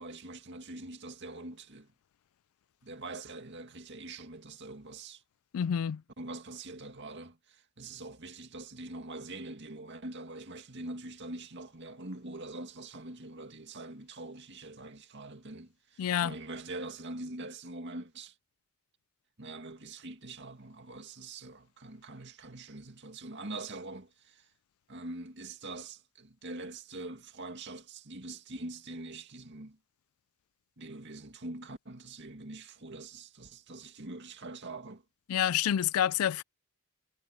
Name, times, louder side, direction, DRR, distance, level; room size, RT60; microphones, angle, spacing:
voice 1, 0.0-1.9 2.8-5.2 6.2-18.3 19.4-24.5 24.9-29.8 30.8-35.0, right 2 dB, 55° right, 2.2 m, -44 dB
voice 2, 5.5-6.0 16.0-16.4 35.3-36.4, left 9 dB, 75° left, 0.3 m, -28 dB
head